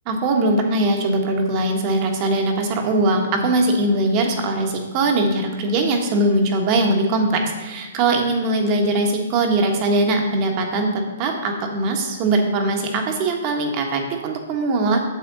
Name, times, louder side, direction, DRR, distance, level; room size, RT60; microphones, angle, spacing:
voice 1, 0.1-15.0, right 2 dB, 35° right, 3 dB, 1.4 m, -21 dB
8.4 x 7.2 x 4.1 m, 1.2 s
hypercardioid pair, 130°, 0 cm